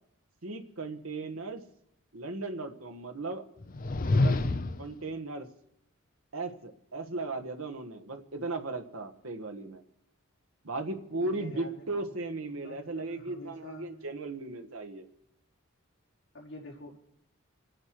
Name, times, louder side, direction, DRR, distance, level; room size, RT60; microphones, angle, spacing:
voice 1, 0.4-1.6 2.1-3.4 4.1-4.4 4.8-5.5 6.3-9.8 10.6-15.1, right 2 dB, 80° right, 5 dB, 1.5 m, -36 dB
sound 1, 3.6-4.9, left 2 dB, 40° left, 0.6 m, -27 dB
voice 2, 11.2-12.1 12.5-13.9 16.3-17.0, left 1 dB, 60° left, -4 dB, 4.8 m, -47 dB
28.0 x 9.7 x 4.8 m, 0.77 s
head